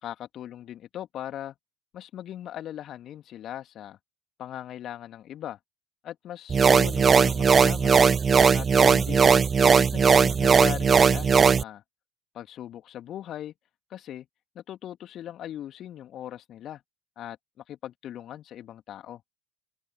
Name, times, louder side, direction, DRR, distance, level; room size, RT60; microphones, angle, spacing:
voice 1, 0.0-1.5 1.9-4.0 4.4-5.6 6.0-8.0 8.5-9.3 9.7-11.8 12.3-13.5 13.9-14.3 14.5-16.8 17.2-17.4 17.7-19.2, left 11 dB, 45° left, 3.1 m, -39 dB
sound 1, 6.5-11.6, right 6 dB, 30° right, 0.9 m, -19 dB
open air
figure-of-eight pair, 65°, 0 cm